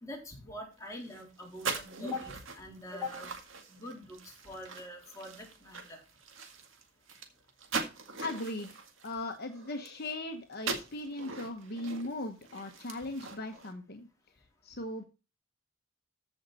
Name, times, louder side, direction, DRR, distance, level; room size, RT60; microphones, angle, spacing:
voice 1, 0.0-3.3 3.7-6.0, left 2 dB, 15° left, -1 dB, 3.9 m, -43 dB
sound 1, 0.9-10.2 10.5-13.7, right 4 dB, 75° right, 1.9 m, -42 dB
voice 2, 8.2-8.8 9.0-14.1 14.6-15.0, left 1 dB, 55° left, 5 dB, 1.1 m, -38 dB
14.5 x 5.4 x 4.2 m, 0.30 s
head